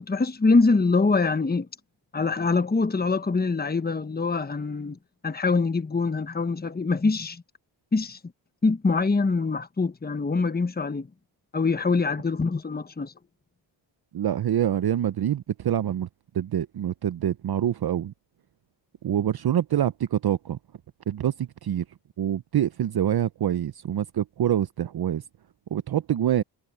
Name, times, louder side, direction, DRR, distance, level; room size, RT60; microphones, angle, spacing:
voice 1, 0.1-1.7 2.1-5.0 5.2-7.4 7.9-8.2 8.6-11.1 11.5-13.1, left 4 dB, 20° left, 1.2 m, -24 dB
voice 2, 14.1-16.1 16.3-18.1 19.0-20.6 21.1-21.8 22.2-25.2 25.7-26.4, right 10 dB, 55° right, 0.7 m, -25 dB
cardioid pair, 65°, 46 cm